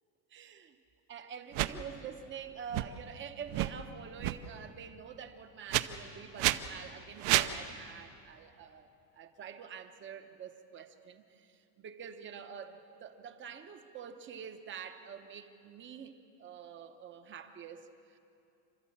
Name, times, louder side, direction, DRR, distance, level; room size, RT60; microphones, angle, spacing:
voice 1, 0.3-0.8 1.1-18.2, right 7 dB, 25° right, 8 dB, 0.8 m, -46 dB
sound 1, 1.5-1.7 2.7-2.8 3.5-3.7 4.2-4.4 5.7-5.8 6.4-6.6 7.2-7.5, right 16 dB, 55° right, 0.8 m, -28 dB
28.0 x 13.0 x 8.6 m, 2.6 s
cardioid pair, 180°, 50 cm